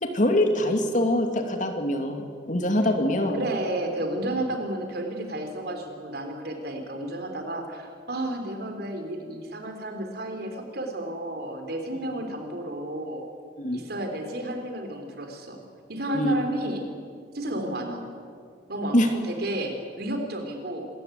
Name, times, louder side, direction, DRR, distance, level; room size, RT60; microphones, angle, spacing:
voice 1, 0.0-3.4 4.4-4.5 13.6-13.8 16.1-16.3 18.9-19.1, left 1 dB, 45° left, 4 dB, 2.5 m, -24 dB
voice 2, 3.3-13.3 13.7-15.6 15.9-16.9 17.3-18.1 18.7-20.9, right 1 dB, 55° right, 4 dB, 3.6 m, -32 dB
26.5 x 14.5 x 9.3 m, 2.2 s
head